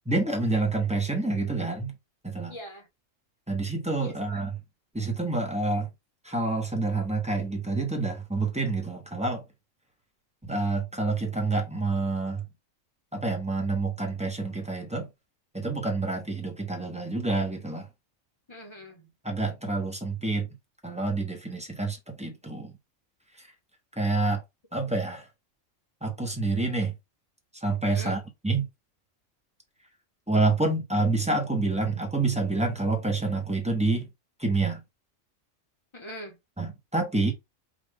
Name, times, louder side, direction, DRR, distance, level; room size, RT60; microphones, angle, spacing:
voice 1, 0.1-1.9 2.2-2.5 3.5-4.6 4.9-5.9 6.2-9.4 10.4-12.4 13.1-15.1 15.5-17.9 19.2-20.5 20.8-22.7 23.4-23.5 24.0-24.4 24.7-25.3 26.0-26.9 27.5-28.7 30.3-34.1 34.4-34.8 36.6-37.3, right 3 dB, 5° right, 1.0 m, -28 dB
voice 2, 2.5-2.9 4.0-4.4 18.5-19.1 27.9-28.2 35.9-36.4, equal, 25° left, 1.3 m, -42 dB
5.0 x 2.7 x 3.6 m
omnidirectional pair, 1.3 m